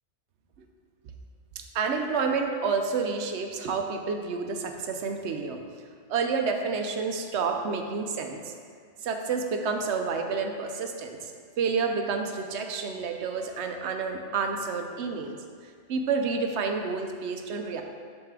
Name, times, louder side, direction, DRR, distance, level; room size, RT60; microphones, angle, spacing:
voice 1, 1.6-5.6 6.1-8.5 9.0-11.3 11.6-15.4 15.9-17.8, right 5 dB, 70° right, 4 dB, 0.9 m, -29 dB
9.9 x 4.1 x 3.7 m, 2.1 s
omnidirectional pair, 1.2 m